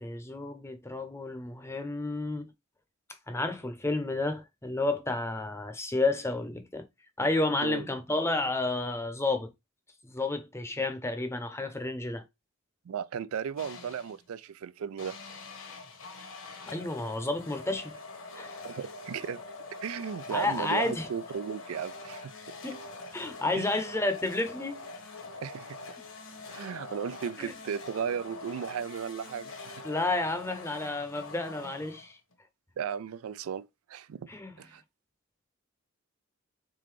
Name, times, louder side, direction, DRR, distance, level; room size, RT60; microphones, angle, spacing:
voice 1, 0.0-2.5 3.3-6.9 7.2-9.5 10.0-12.2 16.7-17.9 18.3-18.6 20.3-21.1 22.6-22.8 23.1-24.9 27.4-27.5 29.8-32.2 34.3-34.5, left 2 dB, 15° left, 0.7 m, -31 dB
voice 2, 12.9-15.2 18.6-19.4 19.8-22.3 23.5-23.7 25.4-25.8 26.5-29.8 32.8-34.2 34.6-34.8, right 7 dB, 90° right, 0.4 m, -35 dB
sound 1, 13.6-14.2 15.0-32.3, left 3 dB, 65° left, 1.3 m, -44 dB
3.8 x 3.7 x 3.2 m
head